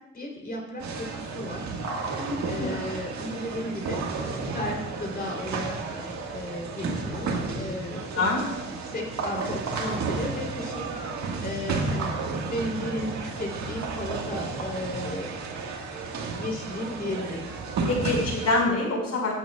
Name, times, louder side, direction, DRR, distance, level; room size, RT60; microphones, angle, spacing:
voice 1, 0.1-1.8 2.5-8.2 8.8-15.4 16.4-17.5, left 1 dB, 30° left, 0 dB, 3.3 m, -34 dB
sound 1, 0.8-18.6, right 4 dB, 70° right, 1.7 m, -32 dB
voice 2, 2.1-2.8 8.1-8.4 17.9-19.3, left 2 dB, 60° left, -1 dB, 4.7 m, -26 dB
20.5 x 9.0 x 2.4 m, 0.99 s
cardioid pair, 90°, 30 cm